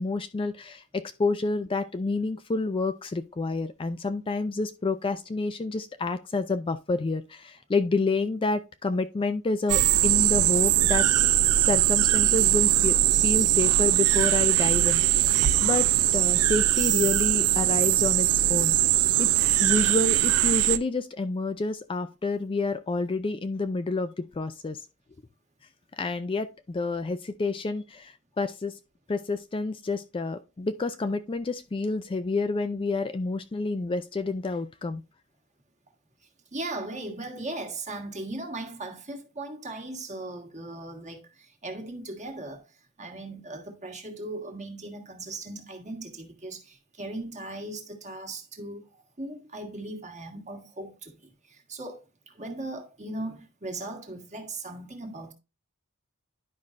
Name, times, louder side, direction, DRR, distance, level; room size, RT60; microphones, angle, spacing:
voice 1, 0.0-11.1 11.6-15.3 15.6-18.7 19.2-24.8 26.0-28.8 29.1-35.0, left 3 dB, 25° left, 0.4 m, -29 dB
sound 1, 9.7-20.8, right 13 dB, 75° right, 0.5 m, -21 dB
voice 2, 36.5-42.6 43.0-48.8 49.2-52.0 52.3-55.3, right 2 dB, 35° right, 1.5 m, -38 dB
10.5 x 5.4 x 2.5 m
head